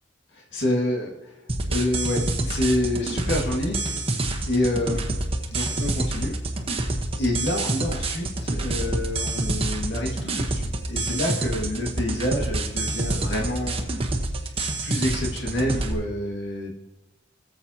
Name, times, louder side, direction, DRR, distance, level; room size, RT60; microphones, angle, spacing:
voice 1, 0.3-1.4 1.7-5.0 5.5-6.3 6.8-13.8 14.8-16.7, left 1 dB, 75° left, -1 dB, 2.0 m, -28 dB
sound 1, 1.5-15.9, right 2 dB, 30° right, 1.1 m, -27 dB
17.5 x 7.6 x 2.9 m, 1.0 s
head